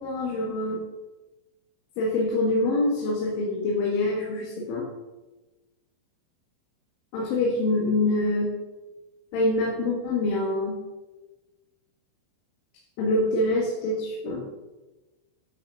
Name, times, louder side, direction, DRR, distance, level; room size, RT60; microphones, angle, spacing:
voice 1, 0.0-0.8 2.0-4.9 7.1-8.5 9.3-10.8 13.0-14.4, left 2 dB, 75° left, -3 dB, 4.2 m, -25 dB
13.5 x 5.9 x 6.8 m, 1.1 s
omnidirectional pair, 5.7 m